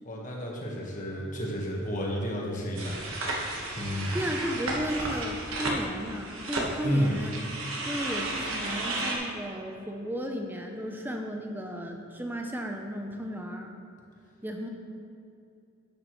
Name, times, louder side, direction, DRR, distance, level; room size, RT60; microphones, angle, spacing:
voice 1, 0.0-3.0 3.8-4.2 6.8-7.2, equal, 35° left, -2 dB, 1.4 m, -31 dB
sound 1, 2.7-9.2, right 2 dB, 70° right, 1.3 m, -33 dB
voice 2, 4.1-7.4 7.8-13.7 14.4-14.7, equal, 10° right, 2 dB, 0.6 m, -34 dB
10.5 x 8.6 x 3.1 m, 2.6 s
head